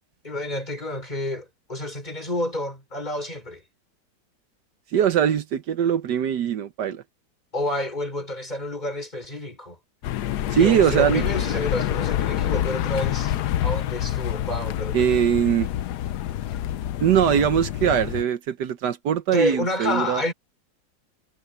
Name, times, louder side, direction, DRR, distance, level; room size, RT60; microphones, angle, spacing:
voice 1, 0.2-3.6 7.5-9.8 10.5-13.4 13.6-15.2 19.3-20.3, left 1 dB, 25° left, 4.9 m, -29 dB
voice 2, 4.9-7.0 10.5-11.2 14.9-15.7 17.0-20.2, right 9 dB, 75° right, 1.5 m, -21 dB
sound 1, 10.0-18.2, left 12 dB, 75° left, 1.2 m, -27 dB
omnidirectional pair, 1.9 m